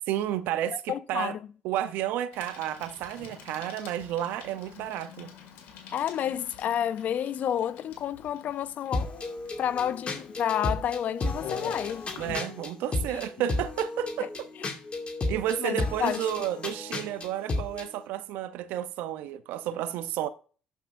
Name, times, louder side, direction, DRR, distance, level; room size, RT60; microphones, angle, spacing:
voice 1, 0.1-1.4 1.6-5.3 12.1-14.3 15.3-20.3, right 11 dB, 75° right, 0.6 m, -31 dB
voice 2, 0.9-1.4 5.9-9.2 9.6-12.1 14.2-14.3 14.6-14.7 15.6-16.2, left 10 dB, 60° left, 0.5 m, -30 dB
Bicycle, 2.3-12.4, left 7 dB, 80° left, 2.0 m, -47 dB
sound 1, 8.9-17.9, left 2 dB, 40° left, 2.1 m, -33 dB
11.0 x 5.6 x 2.5 m
supercardioid pair, 70°, 3 cm